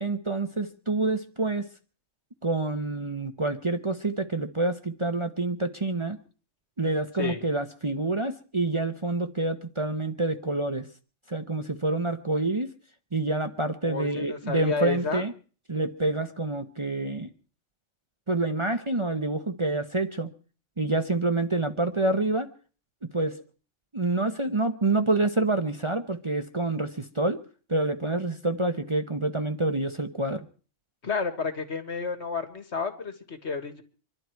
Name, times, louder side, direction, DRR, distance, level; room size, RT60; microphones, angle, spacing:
voice 1, 0.0-1.7 2.4-6.2 6.8-10.9 11.3-12.7 13.1-15.3 15.7-17.3 18.3-20.3 20.8-22.5 23.1-23.4 23.9-27.4 27.7-30.5, right 2 dB, 25° right, 6 dB, 1.0 m, -27 dB
voice 2, 13.8-15.2 31.0-33.8, left 4 dB, 60° left, 8 dB, 2.1 m, -31 dB
25.5 x 12.0 x 4.6 m, 0.40 s
omnidirectional pair, 1.3 m